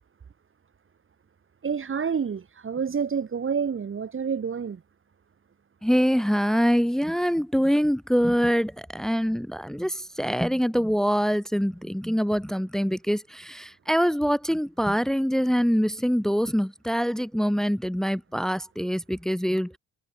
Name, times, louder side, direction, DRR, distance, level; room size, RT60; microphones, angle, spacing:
voice 1, 1.6-4.8, right 6 dB, 45° right, 4.4 m, -28 dB
voice 2, 5.8-19.8, equal, ahead, 1.4 m, -24 dB
cardioid pair, 90°, 30 cm